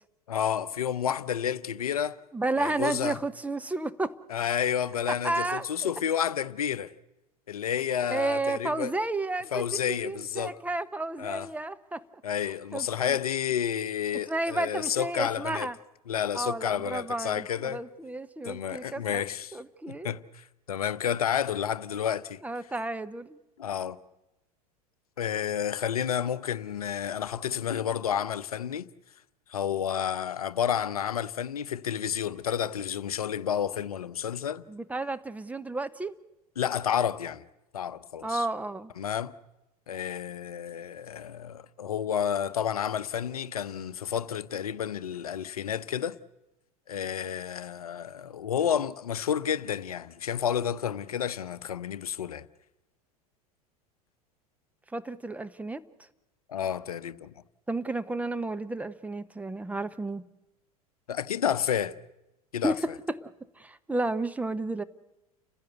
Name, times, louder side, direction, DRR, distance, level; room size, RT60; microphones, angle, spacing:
voice 1, 0.3-2.2 2.6-3.2 4.3-6.9 7.5-8.9 9.5-10.6 11.2-11.5 12.2-15.7 16.1-17.8 18.4-19.6 19.9-22.4 23.6-24.0 25.2-28.9 29.5-34.6 36.6-37.4 37.7-38.5 39.0-39.3 39.9-46.2 46.9-52.5 56.5-57.3 61.1-62.0 62.5-62.8, left 9 dB, 70° left, 0.7 m, -30 dB
voice 2, 2.3-4.2 5.1-5.9 8.1-9.6 9.9-12.0 12.7-13.2 14.3-15.8 16.3-19.2 19.5-20.1 22.4-23.4 34.7-36.1 38.2-38.9 54.9-55.8 57.7-60.2 62.6-63.3 63.6-64.8, right 2 dB, 10° right, 0.8 m, -32 dB
30.0 x 15.5 x 8.1 m
figure-of-eight pair, 80°, 19 cm